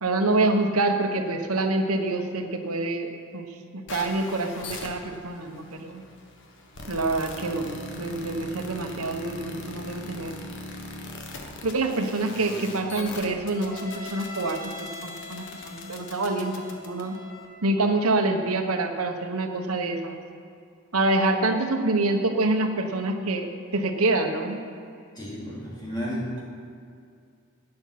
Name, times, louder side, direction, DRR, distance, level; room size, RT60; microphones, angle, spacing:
voice 1, 0.0-3.5 3.9-6.0 6.9-10.5 11.6-16.5 16.9-17.2 17.6-20.2 20.9-24.6, right 2 dB, 80° right, 5 dB, 1.2 m, -26 dB
sound 1, 3.9-17.5, left 2 dB, 60° left, 1.4 m, -40 dB
voice 2, 25.2-26.4, equal, 20° left, -6 dB, 3.4 m, -32 dB
11.0 x 9.9 x 5.9 m, 2.3 s
head